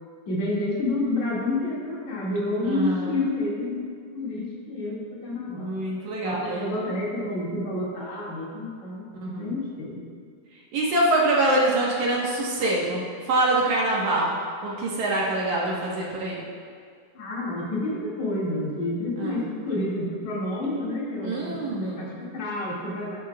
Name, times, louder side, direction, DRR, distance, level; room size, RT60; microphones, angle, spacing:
voice 1, 0.3-5.7 6.2-10.0 17.1-23.2, left 2 dB, 50° left, -6 dB, 3.0 m, -29 dB
voice 2, 2.6-3.2 5.5-6.4 9.2-9.5 10.7-14.4 14.6-16.4 19.2-19.4 21.2-22.2, right 2 dB, 60° right, -4 dB, 2.1 m, -25 dB
13.0 x 10.5 x 2.3 m, 2.1 s
omnidirectional pair, 4.6 m